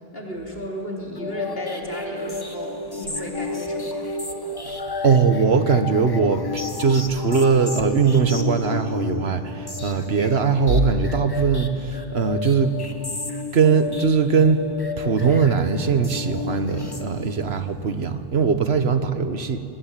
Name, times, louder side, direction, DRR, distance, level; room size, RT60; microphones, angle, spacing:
voice 1, 0.1-4.1, left 1 dB, 65° left, -1 dB, 3.9 m, -34 dB
sound 1, 1.2-17.6, left 3 dB, 20° left, 1.4 m, -32 dB
voice 2, 4.6-12.8 13.5-14.6 15.0-19.6, right 5 dB, 80° right, 9 dB, 1.6 m, -20 dB
24.0 x 20.0 x 9.1 m, 2.6 s
omnidirectional pair, 1.1 m